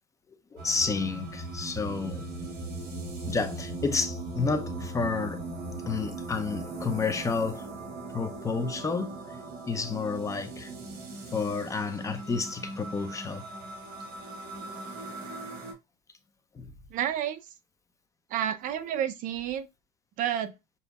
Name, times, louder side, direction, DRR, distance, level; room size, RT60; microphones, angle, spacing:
voice 1, 0.5-2.2 3.3-5.4 5.9-7.7 8.1-9.2 9.7-10.7 11.3-13.4 16.5-16.7, left 4 dB, 15° left, 0.6 m, -30 dB
sound 1, 0.6-15.7, right 2 dB, 65° right, 2.6 m, -39 dB
voice 2, 16.9-17.4 18.3-19.7 20.2-20.5, right 10 dB, 45° right, 0.5 m, -30 dB
6.8 x 2.7 x 2.3 m
cardioid pair, 155°, 19 cm